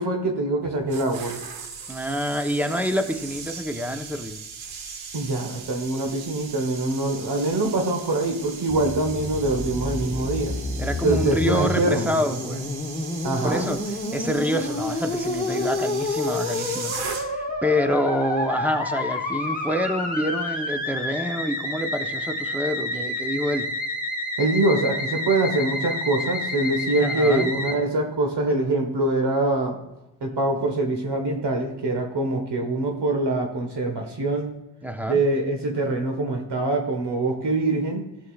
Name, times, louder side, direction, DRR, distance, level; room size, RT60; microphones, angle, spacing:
voice 1, 0.0-1.4 5.1-10.6 11.0-12.1 13.2-13.7 24.4-29.8 30.2-34.5 35.1-38.1, right 2 dB, 60° right, 3 dB, 1.6 m, -24 dB
sound 1, 0.6-17.6 17.9-18.1, right 6 dB, 80° right, 1.2 m, -38 dB
voice 2, 1.9-4.4 10.8-12.7 13.4-13.8 14.1-17.0 17.2-23.7 27.0-27.5 34.8-35.2, equal, 5° right, 6 dB, 1.0 m, -27 dB
Musical instrument, 8.7-27.8, left 2 dB, 20° left, 1.7 m, -29 dB
12.5 x 7.2 x 2.5 m, 0.97 s
supercardioid pair, 55°, 47 cm